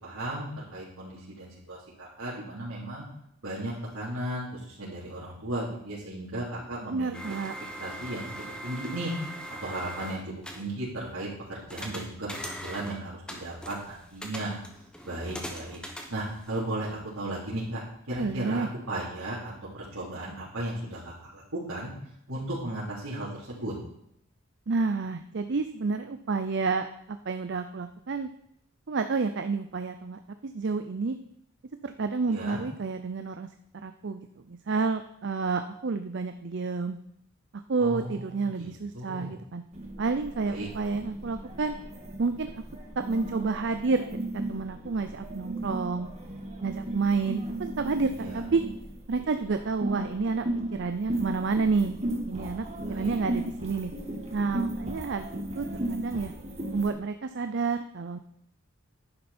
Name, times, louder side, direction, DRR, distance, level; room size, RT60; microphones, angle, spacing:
voice 1, 0.0-3.0 3.4-7.2 7.8-9.1 9.6-14.5 15.0-15.8 16.1-17.8 18.1-21.9 22.3-23.7 32.3-32.6 37.8-39.3 40.4-40.7 48.2-48.4 52.8-53.2, right 1 dB, 85° right, -9 dB, 3.5 m, -35 dB
voice 2, 6.9-7.5 18.2-18.7 24.7-28.3 28.9-31.2 31.8-33.5 33.8-37.0 37.7-39.6 40.0-41.8 42.2-42.5 43.0-46.1 46.6-48.6 49.1-50.5 50.7-52.0 52.3-53.9 54.3-56.3 56.7-58.2, right 4 dB, 55° right, 8 dB, 0.5 m, -29 dB
sound 1, 7.1-10.7 11.7-13.0 13.3-16.8, equal, 5° left, 1.3 m, -41 dB
sound 2, 39.7-56.9, right 1 dB, 30° right, 1.7 m, -36 dB
11.0 x 10.5 x 4.3 m, 0.75 s
head